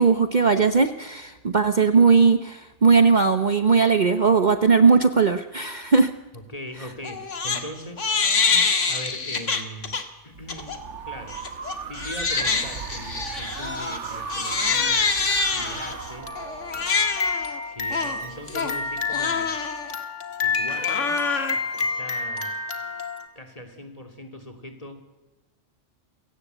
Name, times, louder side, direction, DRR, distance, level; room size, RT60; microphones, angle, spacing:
voice 1, 0.0-6.1, right 5 dB, 40° right, 9 dB, 1.0 m, -18 dB
voice 2, 6.3-8.1 8.5-11.4 11.9-15.1 15.5-16.4 16.7-17.2 17.7-19.5 20.4-21.2 21.5-22.6 23.3-25.0, left 1 dB, 30° left, 5 dB, 2.8 m, -40 dB
Crying sobbing, 7.0-7.6 8.0-10.0 10.5-10.8 11.3-23.3, left 4 dB, 75° left, 2.2 m, -26 dB
sound 1, 10.3-17.5, right 5 dB, 70° right, 1.5 m, -36 dB
29.0 x 17.5 x 8.1 m, 1.1 s
omnidirectional pair, 1.3 m